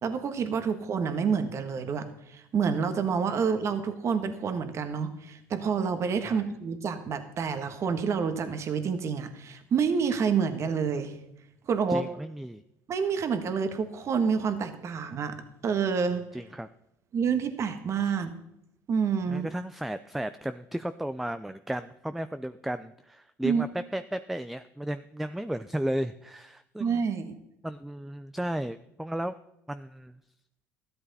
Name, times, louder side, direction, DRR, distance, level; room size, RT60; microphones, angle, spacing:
voice 1, 0.0-11.1 11.7-12.1 12.9-15.4 15.6-16.2 17.1-18.3 18.9-19.5 23.4-23.6 26.8-27.3, right 6 dB, 45° right, 9 dB, 1.4 m, -28 dB
voice 2, 11.9-12.6 16.3-16.7 18.0-18.1 19.3-27.0 27.6-29.3 29.7-30.1, right 1 dB, 5° right, 12 dB, 0.4 m, -34 dB
13.5 x 12.0 x 4.1 m, 0.83 s
supercardioid pair, 95°, 7 cm